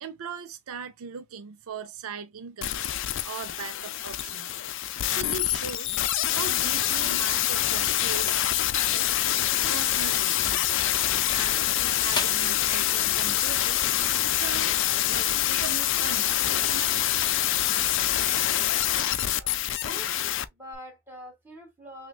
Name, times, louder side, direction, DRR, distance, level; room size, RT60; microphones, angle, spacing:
voice 1, 0.0-2.9 3.2-4.5 5.1-6.0 6.3-8.5 8.7-9.3 9.7-10.7 11.3-14.8 15.1-17.0, right 6 dB, 75° right, 0.5 m, -39 dB
sound 1, 2.6-20.4 20.7-20.8, left 12 dB, 55° left, 0.4 m, -25 dB
sound 2, 11.9-16.9, left 3 dB, 20° left, 1.2 m, -41 dB
sound 3, 12.4-19.7, right 2 dB, 45° right, 1.6 m, -49 dB
voice 2, 19.8-22.1, equal, 10° right, 2.3 m, -45 dB
5.8 x 2.3 x 2.4 m
head